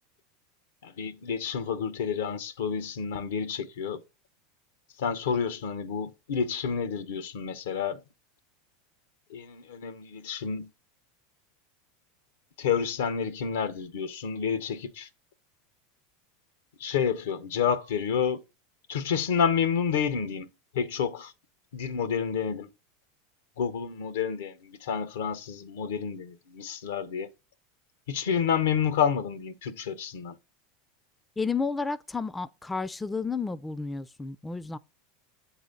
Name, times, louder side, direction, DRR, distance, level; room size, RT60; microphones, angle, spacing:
voice 1, 0.8-4.0 5.0-8.0 9.3-10.7 12.6-15.1 16.8-18.4 18.9-20.5 20.7-21.3 21.7-22.7 23.6-27.3 28.1-30.3, left 7 dB, 80° left, 0.9 m, -29 dB
voice 2, 31.4-34.8, left 4 dB, 15° left, 0.4 m, -31 dB
8.1 x 4.0 x 3.8 m
hypercardioid pair, 95°, 0 cm